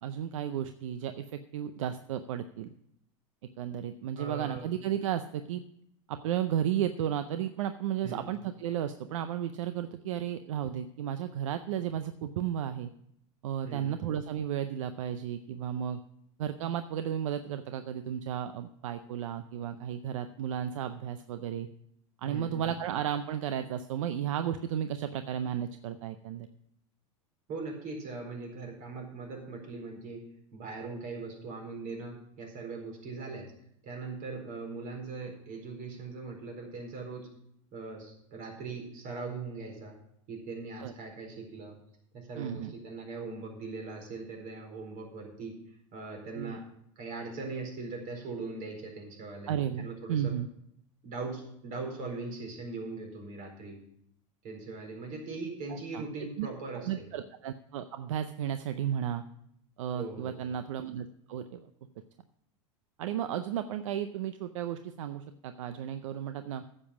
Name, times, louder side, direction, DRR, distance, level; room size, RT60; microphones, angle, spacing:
voice 1, 0.0-2.7 3.6-5.6 6.1-12.9 13.4-16.0 16.4-21.7 22.2-26.5 40.8-40.9 42.4-42.7 46.4-46.6 49.5-50.5 55.9-56.0 56.4-56.5 56.7-59.2 59.8-61.7 63.0-66.6, right 10 dB, 80° right, 10 dB, 0.6 m, -33 dB
voice 2, 4.2-4.7 8.0-8.3 13.6-14.0 22.2-22.7 27.5-30.2 30.5-33.5 33.8-37.3 37.7-40.0 40.3-41.8 42.1-46.6 47.0-50.3 51.0-53.8 54.4-57.0 59.9-60.5, right 3 dB, 50° right, 2 dB, 4.4 m, -40 dB
9.8 x 7.5 x 7.1 m, 0.73 s
hypercardioid pair, 110°, 16 cm